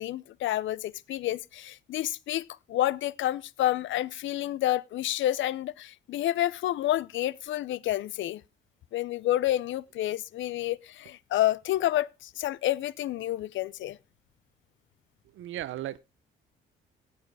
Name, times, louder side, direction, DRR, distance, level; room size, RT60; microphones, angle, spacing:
voice 1, 0.0-8.4 8.9-14.0, left 13 dB, 75° left, 0.6 m, -29 dB
voice 2, 15.3-16.0, right 13 dB, 80° right, 0.8 m, -35 dB
16.0 x 7.1 x 4.7 m
cardioid pair, 90°, 20 cm